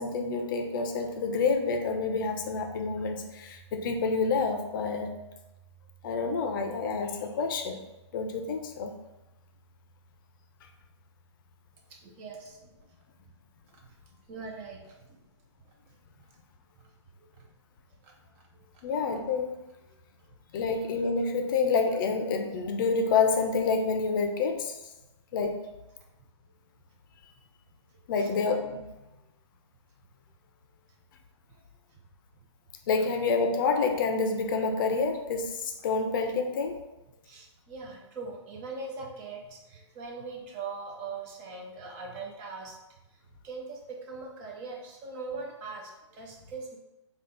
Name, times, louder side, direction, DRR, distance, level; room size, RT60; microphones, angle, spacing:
voice 1, 0.0-5.1 6.0-7.8 8.1-8.9 18.8-19.5 20.5-24.8 25.3-25.6 28.1-28.8 32.9-36.8, left 4 dB, 45° left, 5 dB, 0.6 m, -28 dB
voice 2, 11.9-12.7 13.8-14.0 14.3-15.2 16.8-16.9 17.3-17.5 18.0-18.1 18.5-18.7 20.3-20.4 28.2-28.3 31.5-31.6 37.3-42.8 43.4-46.8, right 4 dB, 25° right, 0 dB, 0.5 m, -41 dB
4.3 x 2.4 x 3.8 m, 0.99 s
hypercardioid pair, 140°, 16 cm